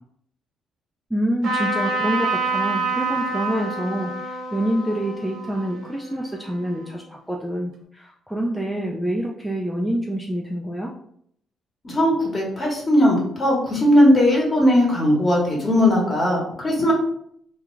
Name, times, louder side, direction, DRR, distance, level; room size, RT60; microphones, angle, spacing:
voice 1, 1.1-10.9, right 1 dB, ahead, -1 dB, 0.3 m, -27 dB
Trumpet, 1.4-6.9, right 3 dB, 70° right, 1.0 m, -27 dB
voice 2, 11.8-16.9, left 1 dB, 35° left, -2 dB, 1.0 m, -18 dB
2.3 x 2.3 x 3.0 m, 0.68 s
cardioid pair, 90°, 0 cm